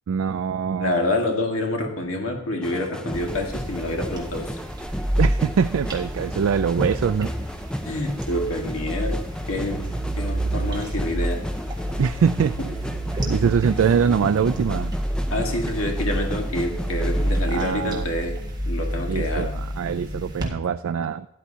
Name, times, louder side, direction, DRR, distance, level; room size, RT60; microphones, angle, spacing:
voice 1, 0.1-1.0 5.2-7.3 12.0-12.6 13.2-14.9 17.5-18.1 19.1-21.3, right 6 dB, 80° right, 10 dB, 0.3 m, -23 dB
voice 2, 0.8-4.5 7.8-9.2 9.5-9.8 10.2-11.4 13.9-14.2 15.3-18.4 18.6-19.5, left 1 dB, 85° left, 2 dB, 1.7 m, -27 dB
sound 1, 2.6-17.4, equal, 5° left, 0.4 m, -34 dB
sound 2, 3.1-20.5, right 1 dB, 20° right, 1.6 m, -29 dB
12.5 x 10.0 x 2.8 m, 0.94 s
head